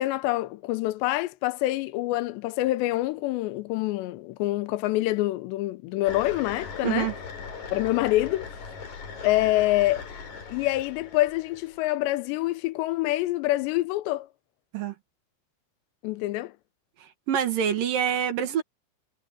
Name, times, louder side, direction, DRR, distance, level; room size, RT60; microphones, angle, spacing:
voice 1, 0.0-7.1 7.7-8.5 9.2-10.0 10.5-14.3 16.0-16.5, left 17 dB, 80° left, 2.9 m, -26 dB
sound 1, 6.0-11.8, left 5 dB, 45° left, 4.7 m, -40 dB
voice 2, 6.8-7.1 14.7-14.9 17.3-18.6, right 9 dB, 60° right, 3.0 m, -25 dB
omnidirectional pair, 5.1 m